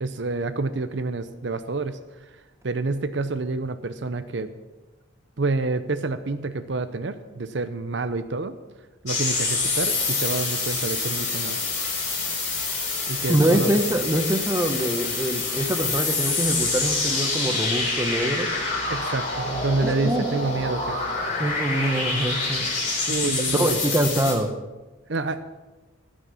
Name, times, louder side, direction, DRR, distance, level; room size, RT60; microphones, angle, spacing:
voice 1, 0.0-2.0 2.6-4.5 5.4-8.5 9.0-11.6 13.1-13.7 18.9-21.0 23.1-23.8 25.1-25.4, right 3 dB, 60° right, 10 dB, 0.7 m, -28 dB
sound 1, 9.1-24.3, left 3 dB, 35° left, 4.1 m, -27 dB
voice 2, 13.3-18.5 19.8-20.2 21.4-22.7 23.2-24.5, right 1 dB, 15° right, 6 dB, 1.0 m, -24 dB
16.5 x 6.4 x 7.2 m, 1.2 s
head